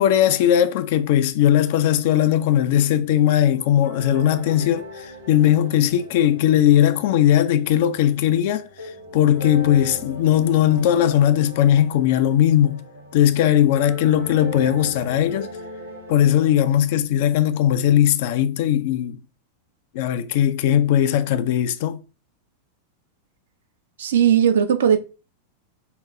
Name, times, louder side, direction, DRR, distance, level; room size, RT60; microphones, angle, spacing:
voice 1, 0.0-8.7 9.1-12.8 13.1-15.6 16.1-19.2 19.9-22.0, left 11 dB, 50° left, 0.3 m, -18 dB
sound 1, 3.3-16.6, equal, 75° right, 1.3 m, -39 dB
voice 2, 24.0-25.0, right 9 dB, 60° right, 0.4 m, -17 dB
3.7 x 2.3 x 2.9 m
figure-of-eight pair, 90°, 0 cm